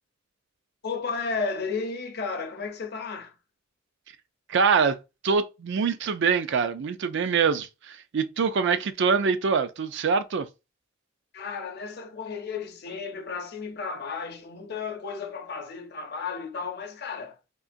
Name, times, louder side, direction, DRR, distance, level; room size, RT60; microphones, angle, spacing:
voice 1, 0.8-3.4 11.3-17.4, left 5 dB, 55° left, 0.7 m, -33 dB
voice 2, 4.5-5.0 5.2-10.5, right 5 dB, 60° right, 0.4 m, -24 dB
3.7 x 2.8 x 2.5 m
head